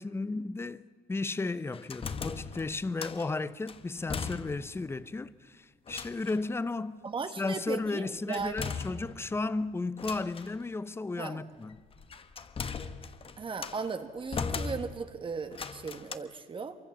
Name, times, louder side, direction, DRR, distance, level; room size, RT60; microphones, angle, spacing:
voice 1, 0.0-7.0 7.4-11.8, left 3 dB, 15° left, 0.8 m, -34 dB
sound 1, 1.7-3.3 3.7-4.8 5.1-5.2 5.9-6.5 8.3-9.4 10.0-10.6 11.7-13.9 14.3-15.2 15.5-16.2, left 5 dB, 35° left, 1.1 m, -38 dB
voice 2, 7.0-8.7 11.2-11.4 13.4-16.8, right 5 dB, 30° right, 1.5 m, -37 dB
26.0 x 24.0 x 7.3 m
cardioid pair, 110°, 17 cm